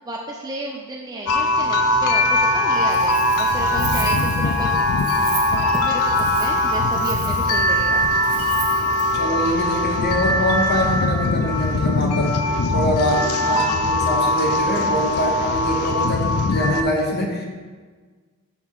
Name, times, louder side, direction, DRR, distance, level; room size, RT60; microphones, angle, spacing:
voice 1, 0.1-5.0 5.5-8.0 13.4-13.9, right 1 dB, 15° right, -2 dB, 0.4 m, -32 dB
sound 1, 1.3-16.8, left 1 dB, 80° left, 0.5 m, -21 dB
Wind instrument woodwind instrument, 2.5-7.1, left 5 dB, 15° left, 1.9 m, -29 dB
Wind, 2.7-9.2, right 7 dB, 80° right, 0.8 m, -37 dB
voice 2, 9.1-17.4, equal, 45° left, 0 dB, 1.0 m, -24 dB
5.8 x 4.2 x 4.6 m, 1.5 s
head